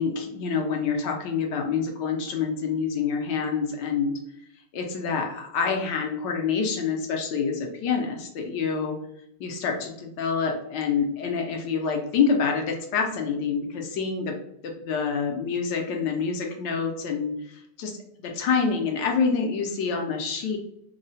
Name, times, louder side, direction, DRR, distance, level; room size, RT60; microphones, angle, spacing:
voice 1, 0.0-4.1 4.7-9.0 9.4-14.4 14.6-17.9 18.2-20.6, left 5 dB, 80° left, 2 dB, 1.2 m, -27 dB
3.6 x 2.0 x 2.7 m, 0.75 s
omnidirectional pair, 1.9 m